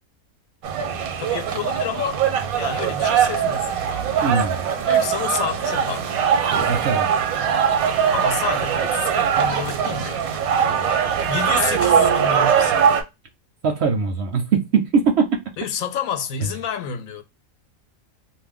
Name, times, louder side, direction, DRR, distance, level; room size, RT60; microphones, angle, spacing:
sound 1, 0.6-13.0, right 8 dB, 85° right, 1.1 m, -21 dB
voice 1, 1.2-4.3 4.8-6.1 8.1-10.4 10.7-12.9 15.6-17.2, left 8 dB, 75° left, 1.0 m, -30 dB
voice 2, 4.2-4.6 6.6-7.1 13.6-15.3, right 5 dB, 65° right, 0.7 m, -21 dB
2.5 x 2.1 x 3.4 m
omnidirectional pair, 1.5 m